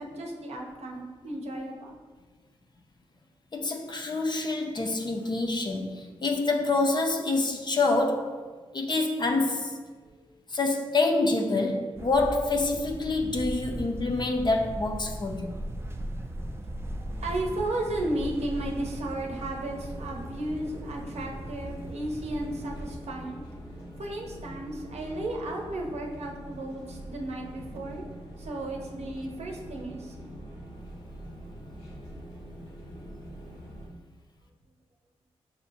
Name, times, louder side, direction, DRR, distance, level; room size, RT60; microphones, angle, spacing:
voice 1, 0.0-2.0 10.0-10.2 16.8-16.9 17.2-23.4 24.0-28.0 28.4-30.3, right 1 dB, 65° right, 0 dB, 0.7 m, -34 dB
voice 2, 3.5-8.4 8.7-9.8 10.5-15.5, left 3 dB, 40° left, 2 dB, 0.5 m, -27 dB
sound 1, 11.9-22.9, right 1 dB, 20° right, 0.4 m, -38 dB
sound 2, 17.1-33.9, equal, 85° left, 1.3 m, -44 dB
6.1 x 2.1 x 2.7 m, 1.4 s
supercardioid pair, 45°, 12 cm